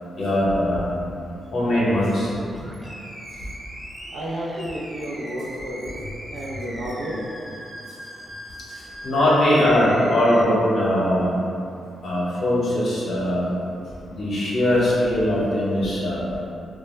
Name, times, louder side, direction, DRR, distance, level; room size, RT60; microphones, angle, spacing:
voice 1, 0.2-0.9 1.5-2.3 9.0-11.3 12.0-13.5 14.1-16.2, left 1 dB, 65° left, -8 dB, 0.7 m, -20 dB
Animal, 2.4-10.4, equal, 20° right, 0.5 m, -39 dB
voice 2, 4.1-5.9 6.3-7.3, equal, 75° right, -4 dB, 0.5 m, -31 dB
2.2 x 2.1 x 3.1 m, 2.6 s
cardioid pair, 65°, 0 cm